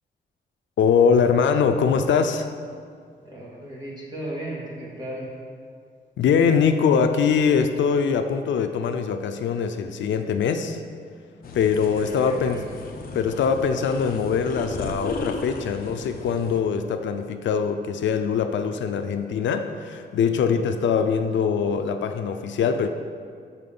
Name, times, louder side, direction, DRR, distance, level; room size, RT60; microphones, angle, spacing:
voice 1, 0.8-2.5 6.2-10.8 11.5-12.6 13.1-22.9, left 6 dB, 80° left, 8 dB, 0.5 m, -22 dB
voice 2, 3.2-5.3 11.9-12.9, right 1 dB, 25° right, -5 dB, 2.1 m, -36 dB
sound 1, 11.4-16.6, left 3 dB, 50° left, 0.8 m, -35 dB
6.3 x 5.6 x 6.9 m, 2.1 s
wide cardioid pair, 160°, 19 cm